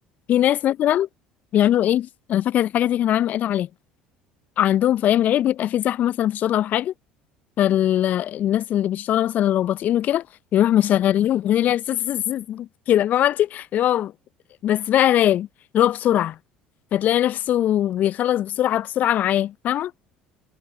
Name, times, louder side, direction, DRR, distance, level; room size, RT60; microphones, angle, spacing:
voice 1, 0.3-1.1 1.5-3.7 4.6-6.9 7.6-10.2 10.5-14.1 14.6-15.5 15.7-16.4 16.9-19.9, left 11 dB, 50° left, 0.7 m, -21 dB
figure-of-eight pair, 60°, 4 cm